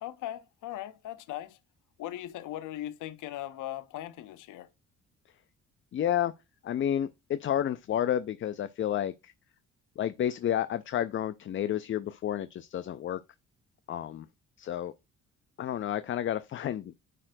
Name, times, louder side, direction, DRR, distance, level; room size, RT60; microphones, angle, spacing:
voice 1, 0.0-1.6 2.0-4.7, left 13 dB, 85° left, 0.7 m, -39 dB
voice 2, 5.9-6.3 6.6-9.3 10.0-13.2 13.9-14.3 14.6-14.9 15.6-17.0, left 10 dB, 40° left, 0.4 m, -30 dB
9.8 x 4.4 x 2.6 m
cardioid pair, 90°, 30 cm